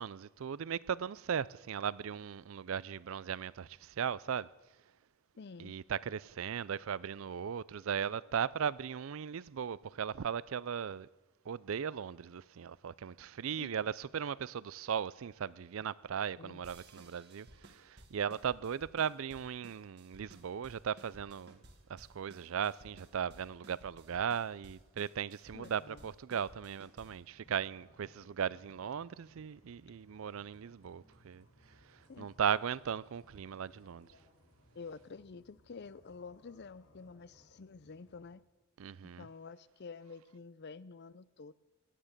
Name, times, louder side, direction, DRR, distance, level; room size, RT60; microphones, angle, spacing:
voice 1, 0.0-4.5 5.6-11.1 11.5-21.6 21.9-34.1 38.8-39.3, right 7 dB, 65° right, 0.4 m, -37 dB
voice 2, 5.4-5.8 13.6-13.7 16.4-16.6 25.5-26.1 32.1-32.3 34.7-38.4 39.2-41.5, left 4 dB, 50° left, 0.5 m, -49 dB
sound 1, 16.6-27.3, right 1 dB, 50° right, 1.7 m, -58 dB
sound 2, 27.0-38.4, left 1 dB, 65° left, 5.0 m, -65 dB
17.5 x 11.5 x 6.6 m
head